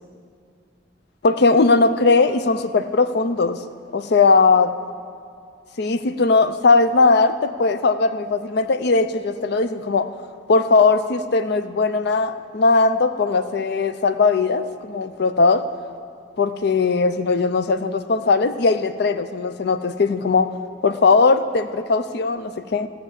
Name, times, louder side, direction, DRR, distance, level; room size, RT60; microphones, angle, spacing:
voice 1, 1.2-3.6 3.9-4.7 5.8-10.1 10.5-15.6 16.4-20.5 20.8-22.9, left 4 dB, 60° left, 11 dB, 0.5 m, -19 dB
15.0 x 5.9 x 7.4 m, 2.3 s
head